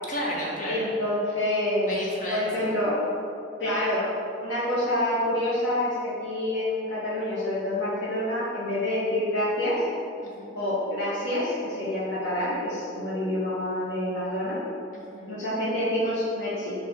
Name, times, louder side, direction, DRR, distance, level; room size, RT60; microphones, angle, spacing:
voice 1, 0.1-0.9 1.9-2.7 10.2-10.6 14.9-15.3, equal, 45° left, -4 dB, 1.4 m, -33 dB
voice 2, 0.6-3.0 3.6-4.0 4.4-9.8 10.5-14.6 15.3-16.7, left 1 dB, 80° left, -10 dB, 1.5 m, -27 dB
7.2 x 3.3 x 5.3 m, 2.6 s
head